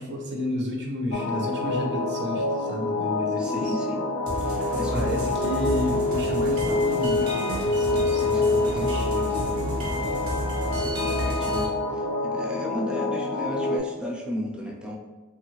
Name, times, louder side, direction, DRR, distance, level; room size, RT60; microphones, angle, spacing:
voice 1, 0.0-3.7 4.8-9.5, equal, 55° right, 0 dB, 0.6 m, -32 dB
sound 1, 1.1-13.8, left 2 dB, 70° left, 0.3 m, -26 dB
voice 2, 3.4-4.0 4.4-5.2 8.2-8.8 10.6-15.0, left 1 dB, 5° right, -2 dB, 0.4 m, -35 dB
sound 2, 4.3-11.6, equal, 90° right, 0.8 m, -31 dB
3.1 x 2.3 x 3.0 m, 1.3 s
head